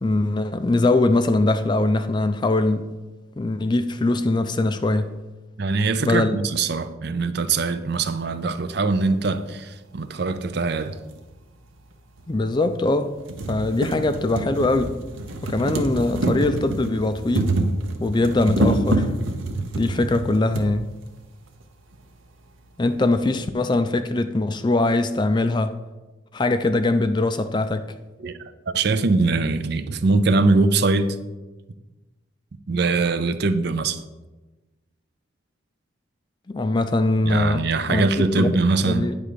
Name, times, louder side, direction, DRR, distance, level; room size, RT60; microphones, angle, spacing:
voice 1, 0.0-2.8 3.4-5.1 6.0-6.4 12.3-13.1 13.5-14.9 15.4-17.5 18.0-19.1 19.8-20.8 22.8-25.8 26.3-27.9 36.5-37.6 37.9-38.5 38.9-39.2, left 2 dB, 20° left, 0.3 m, -22 dB
voice 2, 5.6-11.0 28.2-31.2 32.7-34.0 37.2-39.1, right 3 dB, 50° right, 0.5 m, -22 dB
sound 1, 11.1-11.2 12.2-12.3 12.7-12.8 13.1-20.7 21.6-21.7 21.9-22.0, right 2 dB, 75° right, 0.9 m, -26 dB
9.4 x 3.7 x 6.7 m
head